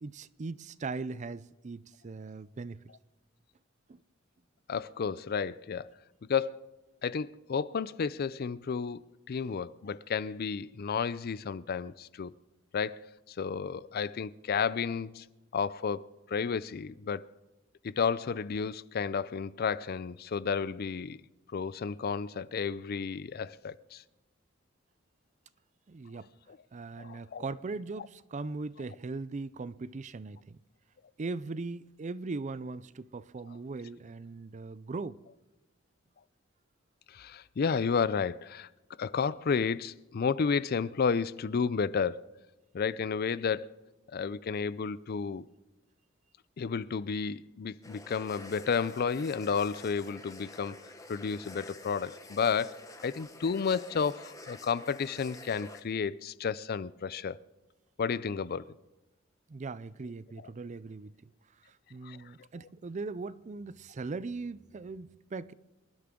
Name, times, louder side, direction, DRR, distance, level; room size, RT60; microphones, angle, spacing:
voice 1, 0.0-2.8 3.9-4.0 25.9-26.3 26.7-30.6 31.2-35.2 59.5-61.3 61.7-65.5, right 3 dB, 35° right, 0.5 m, -39 dB
voice 2, 4.7-5.9 6.3-6.7 7.0-9.0 9.3-12.3 12.7-13.1 13.4-15.2 15.5-17.2 17.8-21.2 21.5-24.0 27.0-27.4 37.1-38.7 39.0-42.2 42.7-43.7 44.1-45.5 46.6-50.8 51.1-57.4 58.0-58.6 62.0-62.2, left 6 dB, 50° left, 0.4 m, -32 dB
sound 1, 47.8-55.8, left 2 dB, 15° left, 1.2 m, -49 dB
26.0 x 12.0 x 3.7 m
head